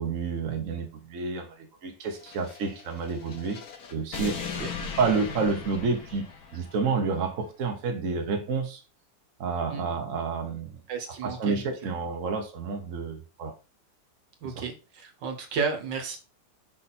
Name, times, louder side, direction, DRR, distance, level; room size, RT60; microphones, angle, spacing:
voice 1, 0.0-3.6 3.9-4.4 5.0-6.3 6.5-8.8 9.4-10.8 11.2-13.5 14.4-14.6, right 4 dB, 50° right, 1.3 m, -29 dB
sound 1, 2.1-6.9, left 5 dB, 60° left, 1.4 m, -38 dB
voice 2, 10.9-11.9 14.4-16.2, right 5 dB, 75° right, 1.8 m, -33 dB
5.5 x 4.1 x 4.2 m
omnidirectional pair, 2.0 m